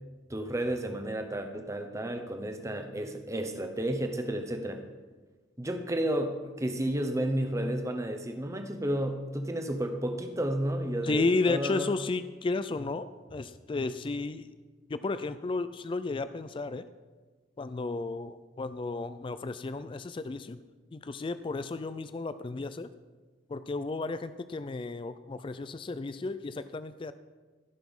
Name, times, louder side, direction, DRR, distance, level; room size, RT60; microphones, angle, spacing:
voice 1, 0.3-4.8 5.6-11.9, right 1 dB, 15° right, 6 dB, 0.9 m, -32 dB
voice 2, 11.1-14.5 14.9-16.8 17.6-20.6 20.9-22.9 23.5-27.1, left 3 dB, 25° left, 13 dB, 0.3 m, -33 dB
16.0 x 6.0 x 5.4 m, 1.3 s
head